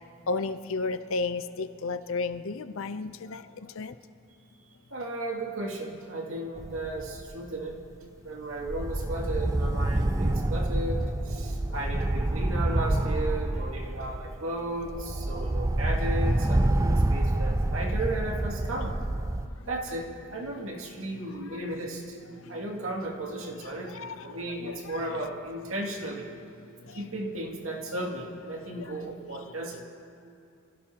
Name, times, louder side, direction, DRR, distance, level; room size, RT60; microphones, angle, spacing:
voice 1, 0.3-3.4 3.8-3.9 23.9-24.2 24.6-25.2, left 3 dB, 65° left, 11 dB, 0.6 m, -32 dB
voice 2, 4.9-7.7 8.2-19.0 19.7-22.2 22.5-26.3 26.9-29.8, right 1 dB, 70° right, 0 dB, 2.3 m, -35 dB
sound 1, 6.6-7.3 7.7-7.9 8.6-14.4 14.8-19.5, right 1 dB, 15° right, 0.4 m, -27 dB
26.5 x 16.5 x 2.9 m, 2.6 s
head